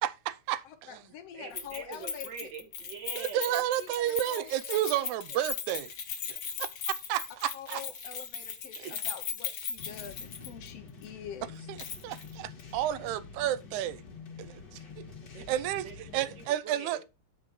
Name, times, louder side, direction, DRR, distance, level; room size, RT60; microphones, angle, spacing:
voice 1, 0.0-1.0 3.2-5.9 6.3-7.8 8.8-9.0 12.0-14.0 14.4-15.1 15.5-17.0, right 12 dB, 80° right, 1.9 m, -32 dB
voice 2, 0.6-2.5 3.8-5.4 7.5-11.5, left 8 dB, 70° left, 1.6 m, -46 dB
voice 3, 1.3-3.6 14.7-15.5 15.8-17.0, right 6 dB, 50° right, 1.5 m, -44 dB
Keys jangling, 1.5-10.7 11.0-11.1 11.8-12.3 12.6-12.7, left 6 dB, 90° left, 0.8 m, -38 dB
sound 1, 9.8-16.5, left 5 dB, 40° left, 1.9 m, -47 dB
9.6 x 4.3 x 4.9 m
omnidirectional pair, 3.5 m